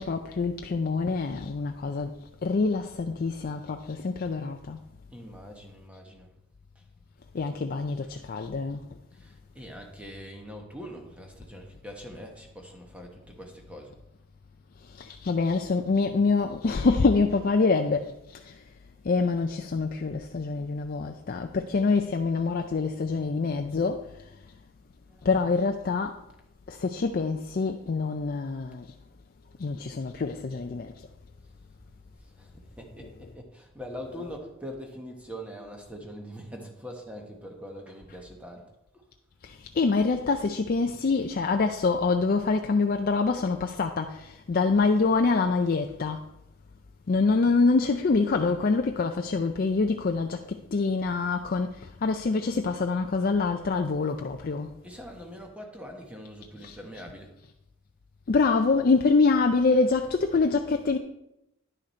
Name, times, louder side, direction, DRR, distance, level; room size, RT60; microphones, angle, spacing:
voice 1, 0.0-2.1 2.4-4.8 7.3-8.8 14.9-18.6 19.0-24.1 25.2-26.2 26.7-28.9 29.6-30.9 39.4-46.2 47.1-54.7 56.6-56.8 58.3-61.0, left 4 dB, 40° left, 0.4 m, -25 dB
voice 2, 5.1-6.3 6.7-6.8 8.0-8.1 9.1-14.0 25.1-25.4 32.2-39.1 44.5-44.6 54.8-57.3, equal, 5° right, 1.2 m, -43 dB
10.0 x 6.3 x 4.3 m
head